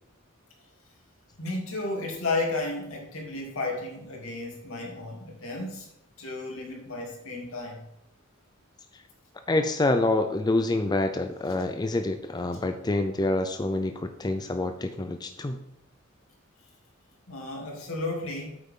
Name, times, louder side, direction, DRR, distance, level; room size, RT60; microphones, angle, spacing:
voice 1, 1.4-5.9 6.2-7.8 17.3-18.6, left 2 dB, 80° left, -1 dB, 2.9 m, -33 dB
voice 2, 9.5-15.6, left 2 dB, 20° left, 7 dB, 0.5 m, -27 dB
8.7 x 8.0 x 3.8 m, 0.79 s
head